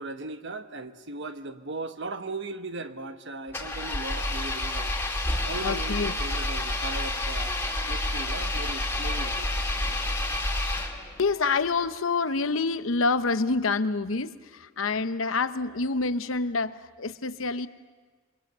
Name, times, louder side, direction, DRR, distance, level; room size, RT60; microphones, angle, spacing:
voice 1, 0.0-4.9 5.4-7.6 7.9-9.6 9.9-10.0, right 2 dB, 65° right, 9 dB, 1.2 m, -38 dB
Engine, 3.5-11.3, left 1 dB, 10° left, 2.5 m, -29 dB
voice 2, 5.4-6.2 7.0-7.1 11.2-17.7, left 4 dB, 75° left, 12 dB, 0.8 m, -27 dB
27.0 x 23.0 x 6.7 m, 1.4 s
head